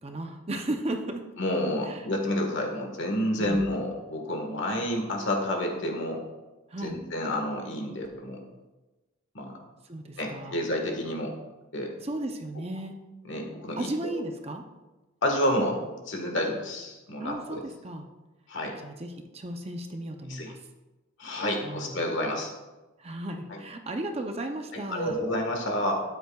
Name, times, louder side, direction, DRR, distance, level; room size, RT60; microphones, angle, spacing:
voice 1, 0.0-1.2 1.8-2.1 3.4-3.7 6.7-7.0 9.9-10.6 12.0-13.0 13.8-14.6 17.2-18.1 18.8-20.6 21.6-22.0 23.0-25.2, right 1 dB, 30° right, 4 dB, 0.7 m, -35 dB
voice 2, 1.4-6.2 6.8-8.4 9.3-9.6 10.2-11.3 11.7-11.9 13.3-14.2 15.2-17.6 18.5-18.8 20.3-20.5 21.2-22.5 23.5-23.6 24.7-26.0, left 1 dB, 65° left, 2 dB, 1.6 m, -29 dB
12.5 x 9.4 x 2.4 m, 1.1 s
head